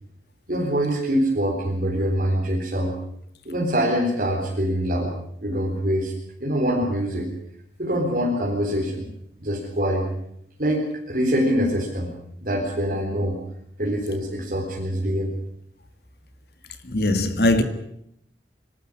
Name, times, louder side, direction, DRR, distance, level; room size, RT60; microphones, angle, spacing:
voice 1, 0.5-3.0 3.5-5.1 5.4-6.1 6.4-7.3 7.8-9.1 9.4-10.1 10.6-12.1 12.4-13.4 13.8-15.3, equal, 50° right, 4.0 m, -24 dB
voice 2, 16.8-17.6, left 1 dB, 65° left, 2.0 m, -20 dB
25.5 x 13.0 x 9.8 m
head